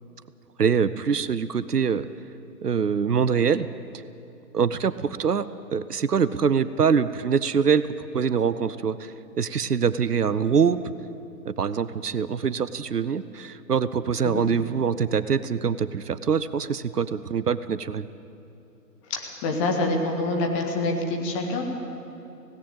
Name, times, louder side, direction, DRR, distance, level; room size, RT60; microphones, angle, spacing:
voice 1, 0.6-2.1 2.6-3.7 4.5-7.8 8.1-10.8 11.5-18.1, right 6 dB, 70° right, 15 dB, 0.8 m, -24 dB
voice 2, 19.1-21.6, left 2 dB, 20° left, 2 dB, 1.7 m, -26 dB
17.5 x 17.0 x 8.9 m, 2.8 s
figure-of-eight pair, 135°, 48 cm